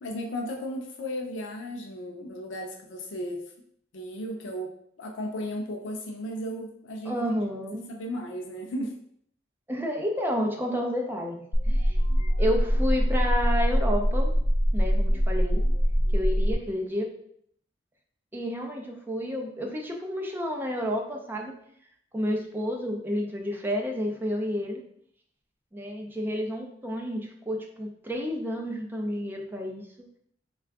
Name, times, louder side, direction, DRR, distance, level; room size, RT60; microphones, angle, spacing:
voice 1, 0.0-3.5 3.9-7.3 7.7-9.0, equal, 80° left, 2 dB, 0.5 m, -35 dB
voice 2, 7.1-7.9 9.7-12.0 12.4-14.3 14.7-15.6 16.1-17.1 18.3-21.6 22.1-24.8 25.7-29.8, equal, 10° right, 0 dB, 0.5 m, -30 dB
sound 1, 11.5-16.5, equal, 35° left, 0.6 m, -23 dB
3.5 x 2.3 x 3.5 m, 0.66 s
head